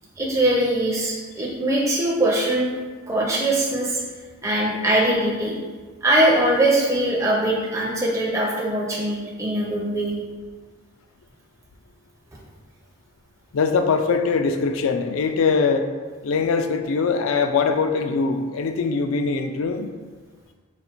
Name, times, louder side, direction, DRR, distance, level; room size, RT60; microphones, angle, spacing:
voice 1, 0.2-2.7 3.1-4.0 4.4-5.6 6.0-10.1, right 1 dB, 15° right, -4 dB, 0.5 m, -21 dB
voice 2, 13.5-15.9 16.2-19.9, left 4 dB, 75° left, 7 dB, 0.3 m, -22 dB
3.9 x 2.4 x 4.3 m, 1.5 s
head